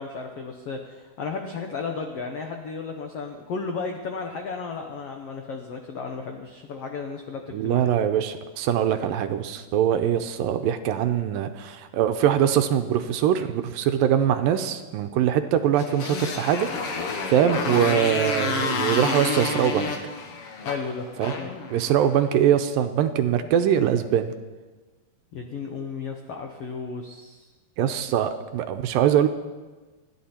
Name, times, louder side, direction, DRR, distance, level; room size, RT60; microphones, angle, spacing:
voice 1, 0.0-7.9 20.6-21.1 21.4-21.5 25.3-27.5, left 4 dB, 80° left, 3 dB, 1.3 m, -34 dB
voice 2, 7.5-17.0 17.3-19.9 21.2-21.3 21.7-24.3 27.8-29.3, right 9 dB, 80° right, 8 dB, 2.3 m, -22 dB
Motorcycle, 15.7-22.2, left 4 dB, 60° left, 1.6 m, -30 dB
28.5 x 10.0 x 4.4 m, 1.3 s
omnidirectional pair, 4.3 m